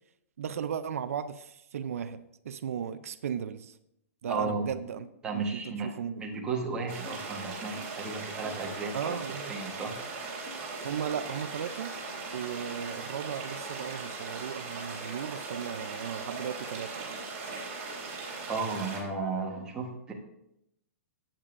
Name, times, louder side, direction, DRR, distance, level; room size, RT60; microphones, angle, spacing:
voice 1, 0.4-3.8 4.2-5.1 5.3-6.3 8.9-9.6 10.8-12.0 12.3-17.1, right 8 dB, 75° right, 0.5 m, -36 dB
sound 1, 4.3-4.4 5.0-5.1 5.6-5.7 6.3-6.5 7.1-7.2 7.7-7.9 8.4-8.6 9.1-9.3 9.8-9.9 10.5-10.6 11.2-11.3, left 4 dB, 55° left, 1.9 m, -47 dB
voice 2, 4.3-4.7 5.2-5.9 6.2-9.2 9.5-10.0 18.5-20.1, right 4 dB, 10° right, 1.2 m, -34 dB
sound 2, 6.9-19.0, right 4 dB, 25° right, 3.7 m, -39 dB
15.0 x 8.8 x 2.6 m
hypercardioid pair, 170°, 8 cm